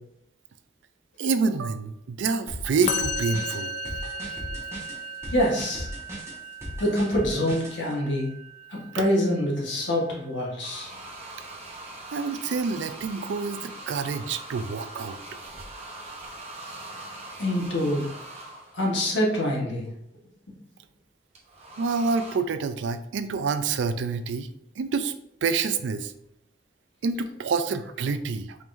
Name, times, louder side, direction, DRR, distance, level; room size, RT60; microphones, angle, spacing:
voice 1, 1.2-3.7 8.9-9.0 12.1-15.2 21.8-24.5 24.8-25.1 25.4-26.1 27.0-28.6, right 4 dB, 85° right, 11 dB, 0.4 m, -27 dB
sound 1, 2.5-7.8, equal, 15° right, 1.1 m, -37 dB
Musical instrument, 2.9-10.2, left 1 dB, 40° left, 0.4 m, -36 dB
voice 2, 5.3-5.9 6.8-8.3 8.7-10.9 17.4-18.1 18.7-19.9, equal, 80° left, -2 dB, 1.3 m, -25 dB
sound 2, 10.6-18.9 21.3-22.4, right 2 dB, 35° right, 0.9 m, -41 dB
4.5 x 3.7 x 2.6 m, 0.80 s
head